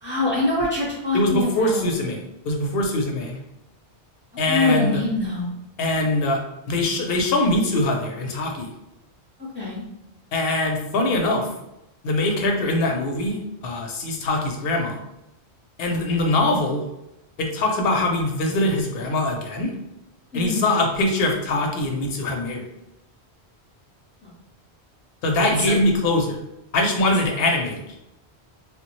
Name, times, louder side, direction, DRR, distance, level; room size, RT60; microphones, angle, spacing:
voice 1, 0.0-1.9 4.5-5.5 9.5-9.8 20.3-20.6 24.2-24.3 25.4-25.7, left 2 dB, 15° left, -5 dB, 0.7 m, -24 dB
voice 2, 1.1-3.4 4.4-5.0 5.8-6.4 6.7-8.7 10.3-11.5 12.0-15.0 15.8-16.8 17.4-19.7 20.3-22.6 25.2-26.4 26.7-27.9, left 2 dB, 65° left, 2 dB, 0.8 m, -22 dB
3.3 x 2.1 x 3.0 m, 0.87 s
omnidirectional pair, 1.1 m